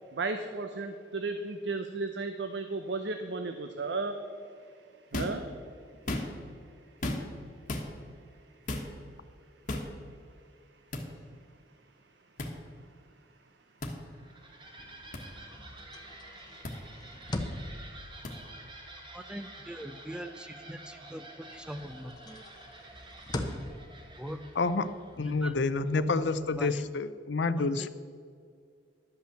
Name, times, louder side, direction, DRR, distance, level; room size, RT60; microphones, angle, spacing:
voice 1, 0.1-4.2 5.1-5.4, right 3 dB, 65° right, 7 dB, 0.6 m, -34 dB
sound 1, 5.1-5.4 5.9-6.5 7.0-7.4 7.7-7.9 8.7-8.9 9.7-9.9 10.9-11.1 12.4-12.5 13.8-14.0 15.1-15.2 16.6-16.7 18.2-18.3, left 1 dB, 45° left, 1.3 m, -34 dB
sound 2, 14.0-26.5, right 2 dB, 25° right, 1.3 m, -50 dB
sound 3, 14.7-21.1 21.5-26.9, left 1 dB, 25° left, 0.8 m, -43 dB
voice 2, 19.1-22.4 24.2-24.5 25.2-25.6 25.9-26.9 27.6-27.9, equal, 5° right, 11 dB, 0.4 m, -40 dB
voice 3, 24.6-24.9 25.2-27.9, left 3 dB, 70° left, 12 dB, 0.5 m, -29 dB
11.5 x 5.6 x 7.6 m, 2.3 s
head